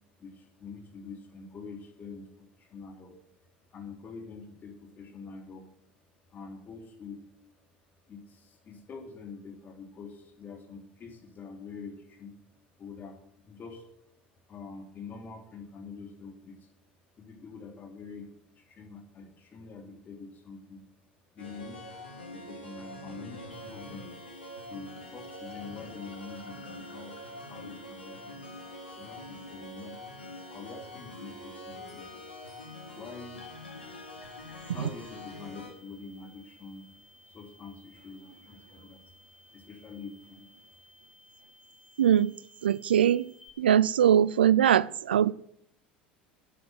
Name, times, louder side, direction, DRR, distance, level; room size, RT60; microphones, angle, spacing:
voice 1, 0.2-3.2 3.7-5.7 6.3-7.2 8.1-12.4 12.8-13.2 13.4-13.8 14.5-16.7 17.2-18.3 18.6-20.8 21.3-21.9 22.3-24.1 24.6-28.4 28.9-30.0 30.5-32.1 33.0-33.4 34.7-36.9 37.3-39.0 39.5-40.5, left 4 dB, 35° left, 2 dB, 3.5 m, -45 dB
sound 1, 21.4-35.7, left 1 dB, 85° left, 3.2 m, -45 dB
sound 2, 23.5-43.5, left 1 dB, 5° left, 3.1 m, -58 dB
voice 2, 42.0-42.3 42.6-43.3 43.6-45.3, right 9 dB, 80° right, 21 dB, 0.4 m, -22 dB
9.6 x 9.5 x 8.0 m, 0.72 s
figure-of-eight pair, 75°, 5 cm